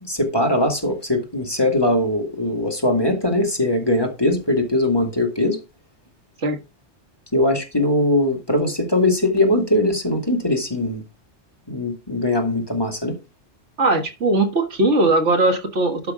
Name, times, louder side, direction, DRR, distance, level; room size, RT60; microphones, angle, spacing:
voice 1, 0.0-5.6 7.3-11.0 11.7-13.2, left 1 dB, 20° left, 2.0 m, -21 dB
voice 2, 13.8-16.1, right 2 dB, 65° right, 1.8 m, -19 dB
11.5 x 5.8 x 3.7 m
omnidirectional pair, 1.3 m